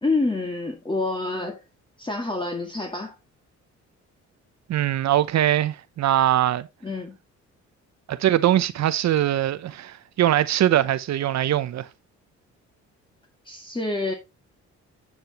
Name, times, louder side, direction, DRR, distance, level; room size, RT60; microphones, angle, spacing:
voice 1, 0.0-1.6 2.0-3.2 6.8-7.2 13.5-14.1, left 2 dB, 15° left, 2.0 m, -27 dB
voice 2, 4.7-6.7 8.1-11.9, right 12 dB, 60° right, 0.7 m, -22 dB
10.5 x 7.8 x 2.9 m
cardioid pair, 90°, 30 cm